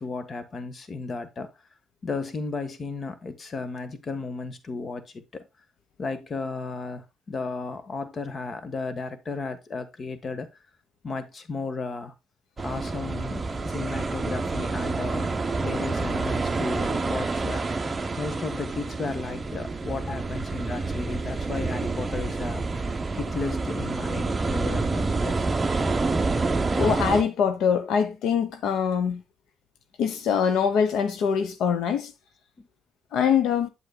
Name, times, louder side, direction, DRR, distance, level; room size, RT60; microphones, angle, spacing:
voice 1, 0.0-1.5 2.0-5.5 6.0-10.5 11.0-12.1 12.6-22.8 23.2-25.4 32.6-32.7, left 3 dB, 40° left, 1.3 m, -34 dB
sound 1, 12.6-27.2, right 3 dB, 20° right, 0.9 m, -28 dB
voice 2, 26.8-29.2 30.0-32.1 33.1-33.7, left 7 dB, 80° left, 1.0 m, -23 dB
8.3 x 8.0 x 2.2 m
cardioid pair, 110°, 0 cm